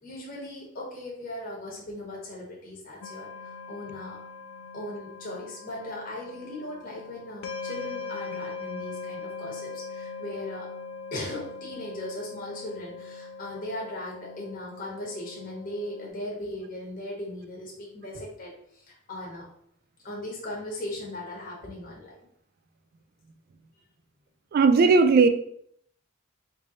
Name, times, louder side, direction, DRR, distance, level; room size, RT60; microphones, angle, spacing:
voice 1, 0.0-4.2 4.7-10.7 11.1-19.5 20.0-22.2, left 1 dB, 45° left, 0.9 m, -38 dB
sound 1, 3.0-16.1, left 4 dB, 90° left, 0.4 m, -41 dB
voice 2, 24.5-25.3, right 4 dB, 45° right, 0.3 m, -17 dB
3.1 x 2.6 x 4.1 m
head